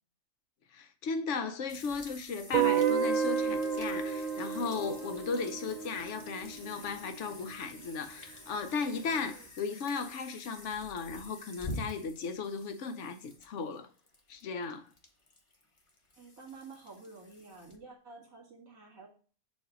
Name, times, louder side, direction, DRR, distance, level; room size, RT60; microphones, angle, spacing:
voice 1, 0.7-13.9 14.3-14.9, left 5 dB, 65° left, 1.0 m, -36 dB
sound 1, 1.7-17.8, left 1 dB, 25° left, 0.8 m, -49 dB
Guitar, 2.5-7.4, right 7 dB, 40° right, 0.7 m, -31 dB
voice 2, 16.2-19.1, right 4 dB, 70° right, 2.2 m, -50 dB
7.1 x 2.7 x 4.9 m
omnidirectional pair, 1.5 m